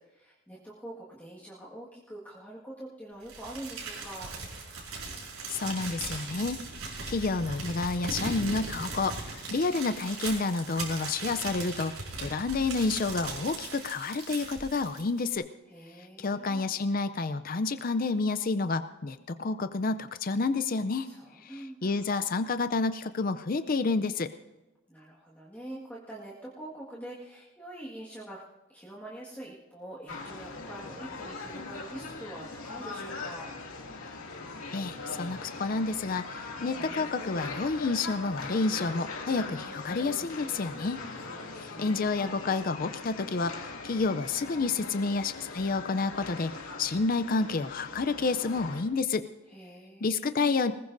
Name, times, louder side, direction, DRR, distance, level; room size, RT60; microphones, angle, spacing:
voice 1, 0.0-4.3 15.7-16.7 21.0-22.3 24.9-28.4 28.7-33.5 41.1-42.5 49.5-50.6, right 1 dB, 5° left, -7 dB, 1.7 m, -45 dB
Crumpling crinkling, 3.3-15.3, right 3 dB, 85° right, 5.1 m, -39 dB
voice 2, 5.5-6.6 7.1-15.5 16.2-21.1 21.4-24.3 34.7-41.0 41.5-49.2 50.0-50.7, left 3 dB, 40° left, 11 dB, 0.5 m, -29 dB
sound 1, 30.1-48.8, left 3 dB, 80° left, 2.4 m, -41 dB
20.0 x 20.0 x 2.6 m, 1.1 s
head